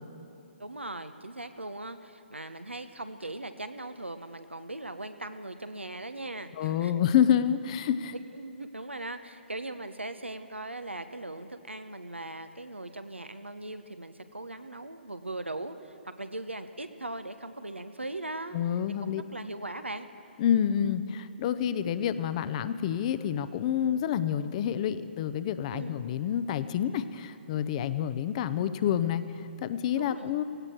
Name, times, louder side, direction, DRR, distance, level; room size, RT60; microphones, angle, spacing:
voice 1, 0.6-6.9 7.2-7.4 8.1-18.6 19.0-20.1 25.7-26.0 30.0-30.3, right 2 dB, 85° right, 9 dB, 1.0 m, -39 dB
voice 2, 6.6-8.1 18.5-19.2 20.4-30.4, left 9 dB, 35° left, 13 dB, 0.7 m, -28 dB
17.0 x 17.0 x 4.6 m, 2.8 s
figure-of-eight pair, 130°, 6 cm